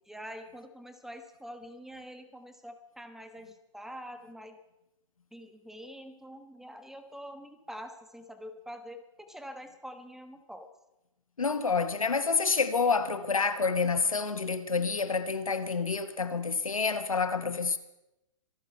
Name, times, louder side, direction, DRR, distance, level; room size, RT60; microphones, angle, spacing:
voice 1, 0.1-4.6 5.3-10.7, equal, ahead, 1.2 m, -45 dB
voice 2, 11.4-17.8, left 4 dB, 85° left, 1.3 m, -28 dB
25.5 x 9.1 x 5.6 m
figure-of-eight pair, 120°, 17 cm